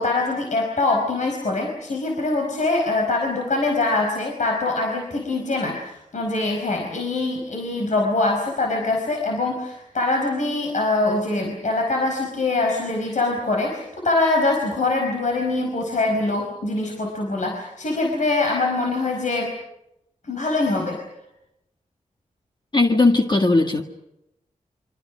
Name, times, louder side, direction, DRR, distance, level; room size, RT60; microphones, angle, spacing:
voice 1, 0.0-19.5 20.3-21.0, left 2 dB, 70° left, 0 dB, 4.8 m, -23 dB
voice 2, 22.7-23.8, left 2 dB, 35° left, 3 dB, 1.8 m, -17 dB
28.5 x 24.5 x 6.2 m, 0.85 s
cardioid pair, 65°, 13 cm